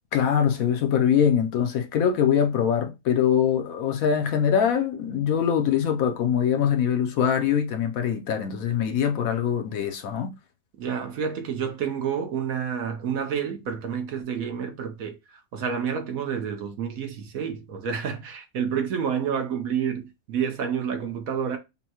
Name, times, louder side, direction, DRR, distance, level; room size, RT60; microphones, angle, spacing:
voice 1, 0.1-10.3, left 8 dB, 70° left, 1.0 m, -23 dB
voice 2, 10.8-21.6, right 7 dB, 65° right, 1.1 m, -29 dB
5.4 x 2.2 x 2.9 m
omnidirectional pair, 1.7 m